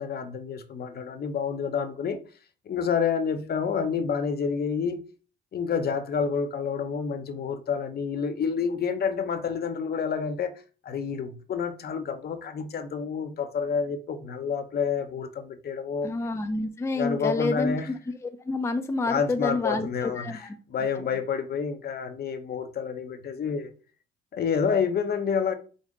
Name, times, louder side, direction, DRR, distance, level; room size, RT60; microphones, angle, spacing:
voice 1, 0.0-2.2 2.7-5.0 5.5-10.5 10.8-16.1 16.9-17.9 19.1-23.7 24.3-25.6, left 6 dB, 50° left, 0.7 m, -29 dB
voice 2, 16.0-17.9 18.2-20.6 21.0-21.1, left 3 dB, 15° left, 0.5 m, -29 dB
5.2 x 2.1 x 3.7 m
cardioid pair, 90°, 20 cm